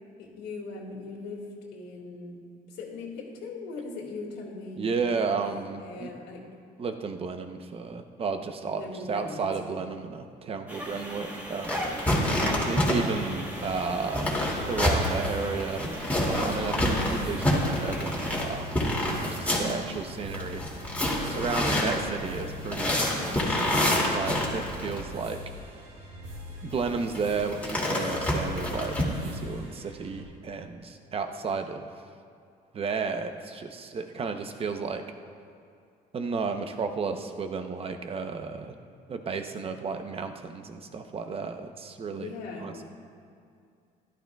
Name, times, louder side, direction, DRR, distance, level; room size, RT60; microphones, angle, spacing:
voice 1, 0.2-2.4 2.7-4.9 5.3-5.4 5.8-6.5 8.7-9.8 12.4-12.7 42.1-42.8, left 3 dB, 90° left, -3 dB, 2.1 m, -40 dB
voice 2, 4.8-6.1 6.8-8.8 9.1-12.3 12.7-14.4 14.7-15.9 16.3-18.9 19.3-20.6 21.2-25.4 26.6-28.9 29.2-31.9 32.7-35.0 36.1-38.7 39.1-42.3 42.6-42.7, right 5 dB, 35° right, 7 dB, 0.8 m, -33 dB
sound 1, 10.7-18.4, equal, 10° right, 1.6 m, -38 dB
sound 2, 11.6-25.0 26.7-29.1, left 1 dB, 10° left, 2.4 m, -28 dB
sound 3, 14.2-30.2, left 1 dB, 70° right, 2.3 m, -44 dB
14.5 x 12.0 x 2.3 m, 2.3 s
cardioid pair, 110°, 17 cm